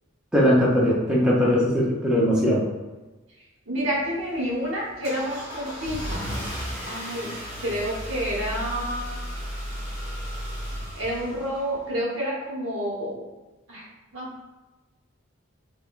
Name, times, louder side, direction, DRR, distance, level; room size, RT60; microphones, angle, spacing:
voice 1, 0.3-2.7, equal, 5° right, -7 dB, 0.5 m, -20 dB
voice 2, 3.7-6.2 6.8-7.3 7.6-9.1 10.9-13.2 13.7-13.8 14.1-14.4, equal, 65° right, -4 dB, 0.9 m, -29 dB
Car / Engine starting, 3.8-12.0, equal, 35° right, 1.3 m, -34 dB
3.5 x 2.2 x 2.3 m, 1.1 s
head